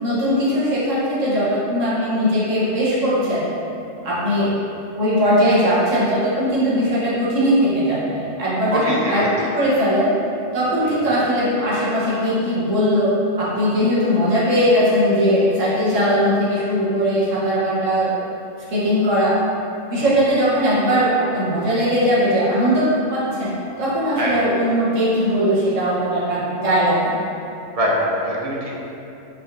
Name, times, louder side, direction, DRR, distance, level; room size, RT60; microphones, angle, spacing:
voice 1, 0.0-3.4 4.0-4.5 4.9-10.1 10.5-13.1 13.4-18.1 18.7-19.3 19.9-23.5 23.8-27.2, equal, 75° right, -9 dB, 1.6 m, -19 dB
voice 2, 8.7-9.3 10.8-11.1 20.0-20.1 24.2-24.3 27.7-28.7, equal, 40° right, -4 dB, 0.6 m, -23 dB
4.8 x 4.0 x 2.6 m, 2.8 s
omnidirectional pair, 1.3 m